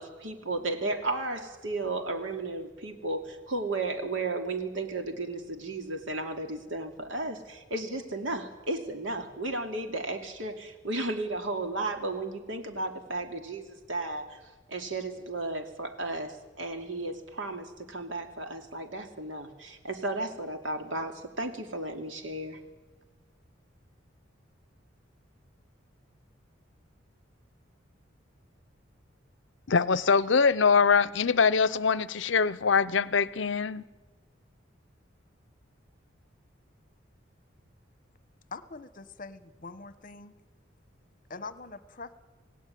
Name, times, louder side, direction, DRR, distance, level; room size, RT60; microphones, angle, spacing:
voice 1, 0.0-14.4 14.7-22.6, right 2 dB, 75° right, 2.8 m, -34 dB
voice 2, 29.7-33.8, left 5 dB, 70° left, 0.7 m, -23 dB
voice 3, 38.5-40.3 41.3-42.1, left 3 dB, 45° left, 1.1 m, -43 dB
27.0 x 17.5 x 9.3 m
head